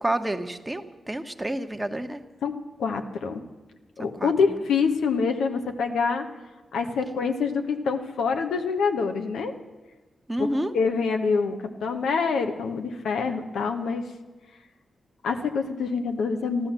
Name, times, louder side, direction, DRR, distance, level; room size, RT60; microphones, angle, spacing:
voice 1, 0.0-2.2 4.0-4.6 10.3-10.7, right 1 dB, 15° right, 7 dB, 1.2 m, -29 dB
voice 2, 2.8-3.4 4.0-6.2 6.7-9.5 10.4-10.5 10.7-14.0 15.2-16.7, left 5 dB, 85° left, 5 dB, 1.1 m, -26 dB
13.0 x 12.5 x 7.4 m, 1.2 s
cardioid pair, 60°, 0 cm